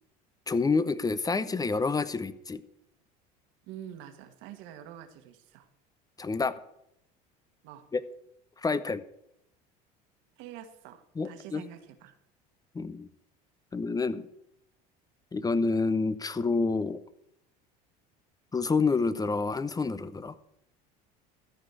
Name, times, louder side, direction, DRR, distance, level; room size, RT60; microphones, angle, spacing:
voice 1, 0.5-2.6 6.2-6.6 7.9-8.0 8.6-9.0 11.2-11.6 12.7-13.1 13.7-14.3 15.3-17.0 18.5-20.3, left 4 dB, 20° left, 15 dB, 0.8 m, -28 dB
voice 2, 3.7-5.7 7.6-7.9 10.4-12.2, right 10 dB, 70° right, 8 dB, 1.6 m, -46 dB
13.5 x 5.1 x 8.1 m, 0.78 s
supercardioid pair, 85°, 20 cm